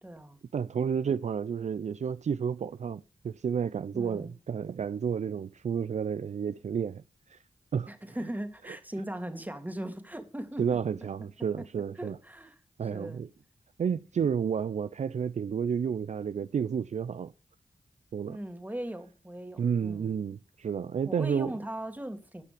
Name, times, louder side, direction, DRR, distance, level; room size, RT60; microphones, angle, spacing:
voice 1, 0.0-0.4 3.9-4.3 7.9-10.6 12.0-12.6 12.9-13.2 18.3-20.1 21.0-22.4, right 1 dB, 15° right, 1.9 m, -39 dB
voice 2, 0.5-7.0 7.3-7.4 7.7-7.9 10.6-12.2 12.8-13.3 13.8-17.3 18.1-18.4 19.6-21.5, right 7 dB, 60° right, 0.4 m, -31 dB
12.5 x 5.8 x 4.9 m
cardioid pair, 45°, 13 cm